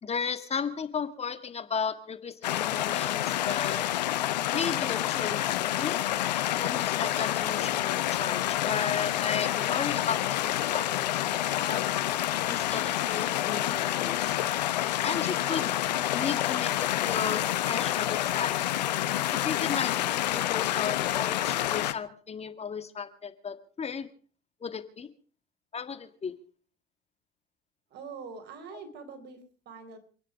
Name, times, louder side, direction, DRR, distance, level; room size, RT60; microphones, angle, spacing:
voice 1, 0.0-3.9 4.5-6.0 6.6-11.9 12.4-14.3 15.0-15.7 16.1-18.6 19.3-24.1 24.6-25.1 25.7-26.4, left 6 dB, 30° left, 10 dB, 1.7 m, -35 dB
sound 1, 2.4-21.9, left 13 dB, 90° left, 1.1 m, -28 dB
voice 2, 27.9-30.0, right 5 dB, 55° right, 8 dB, 4.2 m, -44 dB
27.5 x 10.0 x 5.1 m, 0.41 s
hypercardioid pair, 80°, 21 cm